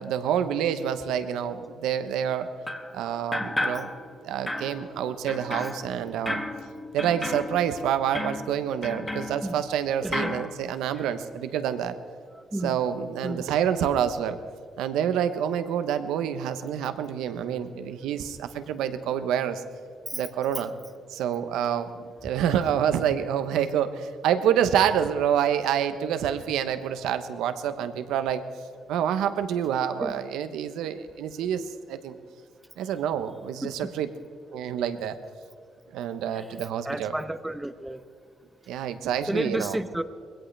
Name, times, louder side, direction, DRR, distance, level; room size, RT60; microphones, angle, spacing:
voice 1, 0.0-2.5 2.9-3.9 4.2-6.4 6.9-12.0 12.5-14.4 14.8-19.6 20.1-20.7 21.1-28.4 28.9-32.2 32.8-34.1 34.5-35.2 35.9-37.2 38.7-39.8, right 9 dB, 90° right, 10 dB, 0.9 m, -27 dB
sound 1, 2.7-3.0 3.3-4.2 4.5-9.8 10.1-10.5, left 1 dB, 10° left, 1.7 m, -33 dB
voice 2, 12.3-12.8 13.2-13.5 20.1-20.2 20.5-20.6 30.0-30.1 33.6-33.9 36.3-36.5 36.8-38.0 39.3-40.0, right 1 dB, 10° right, 12 dB, 0.8 m, -32 dB
21.0 x 17.0 x 3.4 m, 2.1 s
cardioid pair, 90°, 0 cm